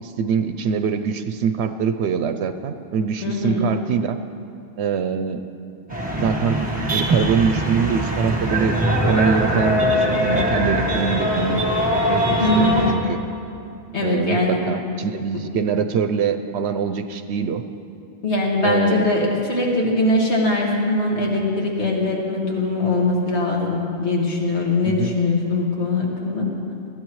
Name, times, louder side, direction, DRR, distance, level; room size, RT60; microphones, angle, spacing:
voice 1, 0.0-4.2 4.8-5.4 6.2-6.6 6.9-8.8 9.1-11.7 12.1-13.2 14.0-17.6 18.6-19.3 24.9-25.1, right 6 dB, 75° right, 9 dB, 0.8 m, -24 dB
voice 2, 3.2-3.6 12.4-12.8 13.9-14.6 18.2-26.5, left 2 dB, 75° left, -3 dB, 2.3 m, -21 dB
sound 1, 5.9-12.9, equal, 10° right, 1.3 m, -21 dB
20.5 x 13.5 x 3.1 m, 2.6 s
omnidirectional pair, 1.2 m